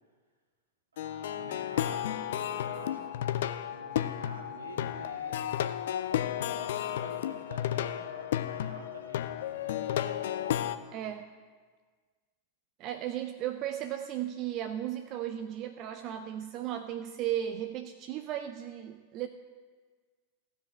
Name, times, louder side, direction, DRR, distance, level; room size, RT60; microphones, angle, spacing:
voice 1, 0.9-3.4 3.7-5.6 6.3-10.0, right 2 dB, 75° right, 1 dB, 1.7 m, -49 dB
Plucked string instrument, 1.0-10.8, left 11 dB, 60° left, 0.4 m, -33 dB
voice 2, 10.9-11.3 12.8-19.3, right 11 dB, 40° right, 8 dB, 0.4 m, -35 dB
15.0 x 5.2 x 7.4 m, 1.5 s
figure-of-eight pair, 90°, 0 cm